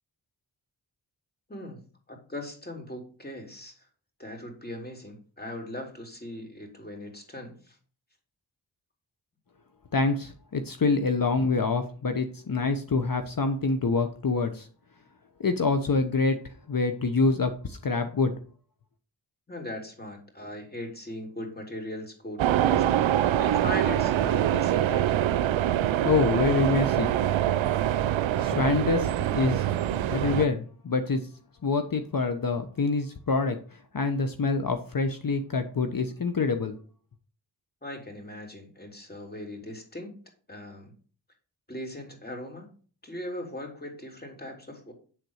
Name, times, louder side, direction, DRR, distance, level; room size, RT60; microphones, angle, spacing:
voice 1, 1.5-1.8 2.1-3.9 4.2-7.8 19.5-22.9 23.4-25.2 37.8-40.1 40.5-40.9 41.7-42.7 43.0-44.9, left 1 dB, 20° left, 2 dB, 3.6 m, -39 dB
voice 2, 9.9-14.7 15.4-18.3 26.0-27.1 28.4-29.7 30.1-31.3 31.6-36.8, left 3 dB, 45° left, 7 dB, 1.1 m, -26 dB
sound 1, 22.4-30.5, right 11 dB, 75° right, 0.6 m, -24 dB
9.5 x 4.0 x 6.4 m, 0.40 s
cardioid pair, 40°, 47 cm